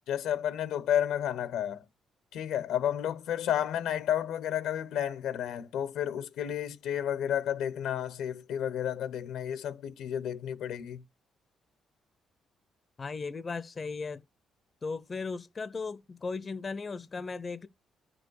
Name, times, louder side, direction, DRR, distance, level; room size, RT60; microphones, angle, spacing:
voice 1, 0.1-1.8 2.3-11.0, left 10 dB, 85° left, 1.0 m, -31 dB
voice 2, 13.0-14.2 14.8-17.7, left 4 dB, 35° left, 0.7 m, -36 dB
10.0 x 5.1 x 4.7 m
cardioid pair, 100°, 0 cm